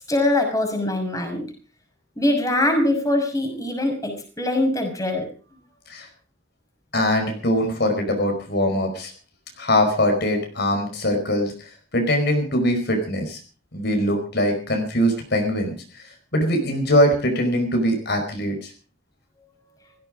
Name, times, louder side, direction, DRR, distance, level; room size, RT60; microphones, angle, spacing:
voice 1, 0.1-1.5 2.2-5.3, left 1 dB, 20° left, 4 dB, 6.0 m, -22 dB
voice 2, 6.9-9.1 9.6-11.5 11.9-13.4 13.7-15.7 16.3-18.7, equal, 60° left, 4 dB, 5.0 m, -22 dB
17.5 x 16.0 x 5.0 m, 0.38 s
head